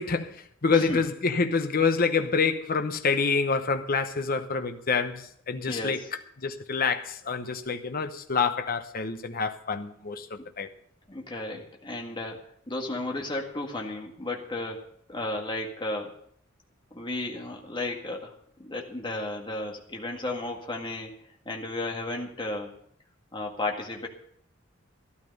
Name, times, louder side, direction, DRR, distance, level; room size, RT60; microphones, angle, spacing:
voice 1, 0.0-6.0 6.4-10.7, left 4 dB, 45° left, 0.9 m, -27 dB
voice 2, 0.7-1.0 5.7-6.1 10.4-10.5 11.1-16.1 16.9-18.3 18.6-21.2 21.5-22.7 23.3-24.1, left 2 dB, 25° left, 1.8 m, -34 dB
13.0 x 12.5 x 5.4 m
head